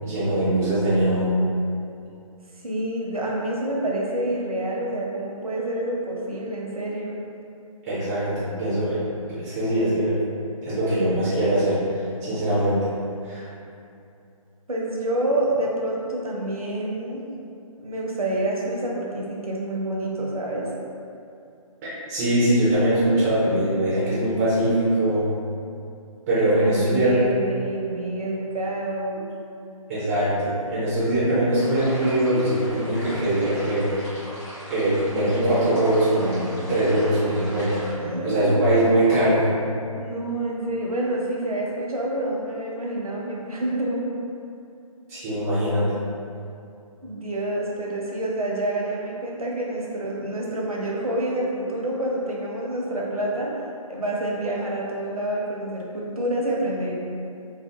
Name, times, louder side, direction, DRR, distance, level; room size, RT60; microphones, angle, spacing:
voice 1, 0.0-1.4 7.8-9.0 9.3-10.2 10.6-11.8 12.2-12.9 13.2-13.5 21.8-25.3 26.3-27.2 29.9-33.9 34.7-39.4 45.1-45.9, right 1 dB, 5° right, -13 dB, 0.3 m, -22 dB
voice 2, 2.6-7.2 14.7-17.3 17.8-20.7 26.3-29.2 37.9-38.7 39.8-44.1 47.0-53.5 53.9-56.9, right 1 dB, 80° right, -3 dB, 0.6 m, -28 dB
sound 1, 31.5-37.9, equal, 25° left, 0.8 m, -39 dB
2.6 x 2.4 x 2.3 m, 2.6 s
figure-of-eight pair, 145°, 18 cm